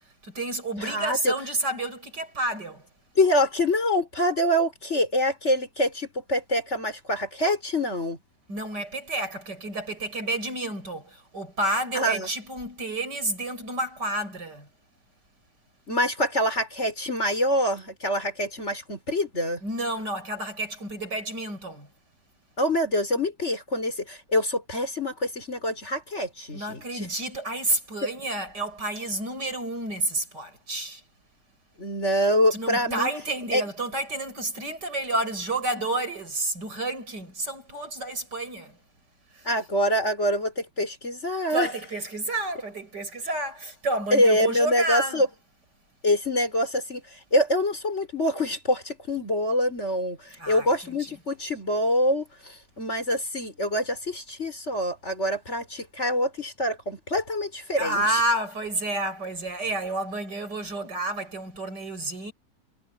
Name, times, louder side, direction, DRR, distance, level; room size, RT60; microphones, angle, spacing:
voice 1, 0.2-2.9 8.5-14.7 19.6-21.9 26.5-31.0 32.5-38.8 39.3-39.5 41.5-45.2 50.4-51.1 57.7-62.3, right 2 dB, 75° right, 8.0 m, -30 dB
voice 2, 0.8-1.3 3.2-8.2 12.0-12.3 15.9-19.6 22.6-27.1 31.8-33.1 33.5-33.6 39.5-41.7 44.1-45.3 46.0-58.2, left 1 dB, 40° left, 5.4 m, -25 dB
omnidirectional pair, 1.8 m